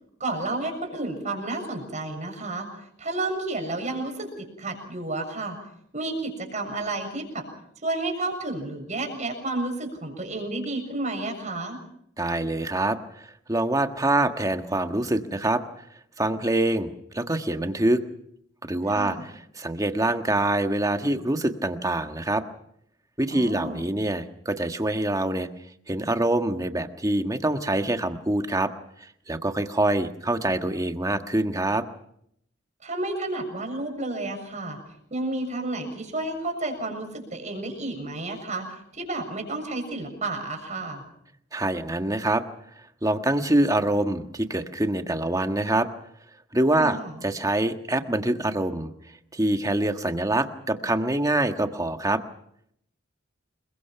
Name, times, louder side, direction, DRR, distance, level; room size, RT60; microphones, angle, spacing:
voice 1, 0.2-2.7 3.0-5.6 5.9-7.5 7.8-11.8 18.9-19.2 23.3-23.9 32.8-34.8 35.1-41.0 46.8-47.1, right 2 dB, 40° right, 5 dB, 6.9 m, -31 dB
voice 2, 12.2-15.6 16.2-18.0 18.6-22.4 23.2-25.5 25.9-28.7 29.3-31.8 41.5-42.4 43.0-45.9 46.5-48.9 49.3-52.2, right 1 dB, 20° right, 6 dB, 1.5 m, -25 dB
29.0 x 22.5 x 5.8 m, 0.72 s
head